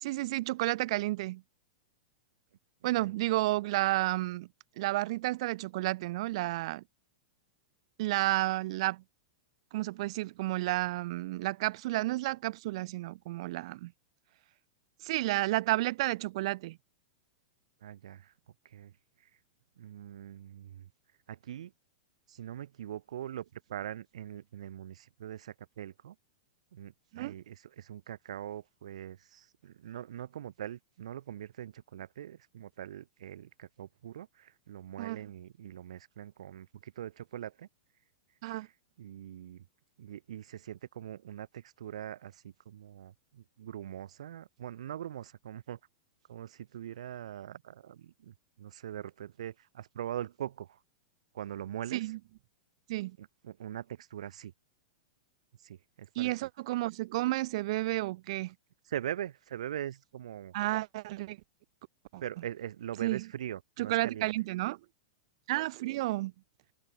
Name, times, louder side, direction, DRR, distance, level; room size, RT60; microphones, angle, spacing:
voice 1, 0.0-1.4 2.8-4.5 4.8-6.8 8.0-9.0 9.7-13.9 15.0-16.8 27.1-27.3 35.0-35.2 38.4-38.7 51.9-52.2 52.9-53.2 56.2-58.5 60.5-61.4 62.1-62.2 63.0-63.3 63.8-64.8 65.5-66.3, right 18 dB, 60° right, 0.6 m, -31 dB
voice 2, 17.8-18.3 18.7-18.9 19.8-20.9 21.3-21.7 22.3-26.1 26.7-37.7 39.0-39.6 40.0-45.8 46.3-50.8 51.3-52.1 53.2-54.5 55.6-56.3 58.9-60.5 62.2-64.3, right 11 dB, 75° right, 2.5 m, -42 dB
hypercardioid pair, 120°, 3 cm